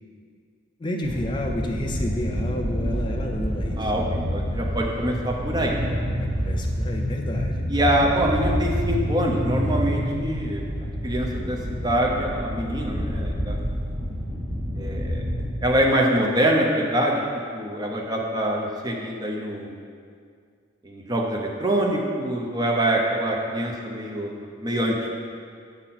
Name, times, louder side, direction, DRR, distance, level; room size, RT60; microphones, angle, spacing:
voice 1, 0.8-3.9 6.2-7.6, left 1 dB, 25° left, 1 dB, 0.4 m, -30 dB
sound 1, 1.0-15.5, equal, 75° right, 2.0 m, -28 dB
voice 2, 3.8-6.0 7.7-10.7 11.0-13.6 14.7-15.2 15.6-17.2 17.5-19.7 20.8-24.3 24.6-25.1, right 1 dB, 20° right, -1 dB, 0.8 m, -24 dB
7.8 x 4.2 x 5.7 m, 2.2 s
head